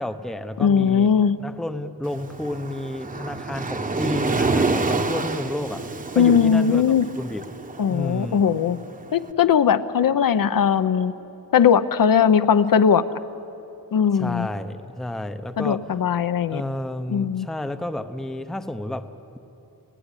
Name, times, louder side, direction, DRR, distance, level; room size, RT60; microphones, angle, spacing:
voice 1, 0.0-1.1 1.4-6.8 7.2-7.6 7.9-8.4 14.1-15.9 16.5-19.4, left 1 dB, ahead, 9 dB, 0.7 m, -31 dB
voice 2, 0.6-1.4 6.2-7.1 7.8-8.8 9.1-11.1 11.5-13.0 13.9-14.5 15.6-16.6 17.1-17.5, left 7 dB, 55° left, 11 dB, 0.8 m, -19 dB
Waves surf, 2.0-9.2, right 3 dB, 20° right, 1.0 m, -28 dB
30.0 x 17.5 x 9.9 m, 3.0 s
wide cardioid pair, 175°, 40 cm